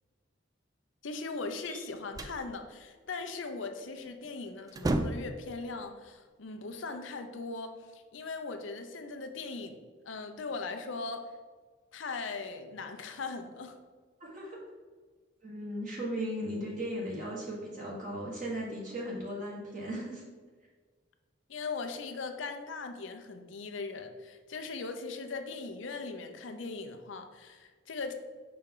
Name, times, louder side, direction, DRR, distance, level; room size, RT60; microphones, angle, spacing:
voice 1, 1.0-9.8 10.0-11.3 11.9-13.8 21.5-28.1, left 4 dB, 75° left, 7 dB, 0.6 m, -39 dB
sound 1, 1.7-2.5 4.1-4.3 4.6-5.4, right 1 dB, 20° right, 0.3 m, -32 dB
voice 2, 14.2-14.6 15.4-20.3, equal, 45° right, -5 dB, 1.4 m, -37 dB
5.9 x 4.3 x 3.7 m, 1.5 s
head